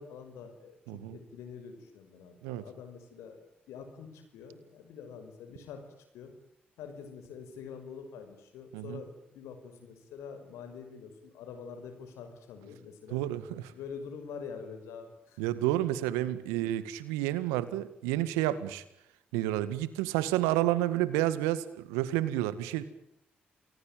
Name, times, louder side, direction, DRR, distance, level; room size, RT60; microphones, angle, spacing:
voice 1, 0.0-5.8 6.1-6.3 6.8-13.2 13.7-15.4, left 6 dB, 75° left, 8 dB, 5.8 m, -46 dB
voice 2, 0.9-1.2 2.4-2.6 8.7-9.0 13.1-13.7 15.4-18.8 19.3-22.8, right 14 dB, 85° right, 15 dB, 1.8 m, -30 dB
29.0 x 21.0 x 9.2 m, 0.78 s
hypercardioid pair, 45°, 5 cm